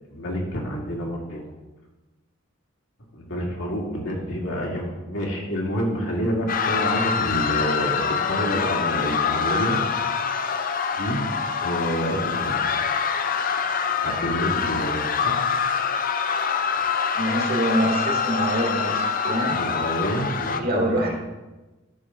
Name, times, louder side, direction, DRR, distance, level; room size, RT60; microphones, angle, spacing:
voice 1, 0.1-1.4 3.1-9.8 11.0-11.2 11.6-12.7 14.0-15.4 19.5-21.1, equal, 70° left, -2 dB, 2.2 m, -28 dB
sound 1, 6.5-20.6, left 6 dB, 45° left, 0.5 m, -25 dB
voice 2, 17.2-19.6 20.5-21.1, right 1 dB, 45° right, 0 dB, 1.9 m, -25 dB
11.5 x 6.6 x 3.8 m, 1.1 s
head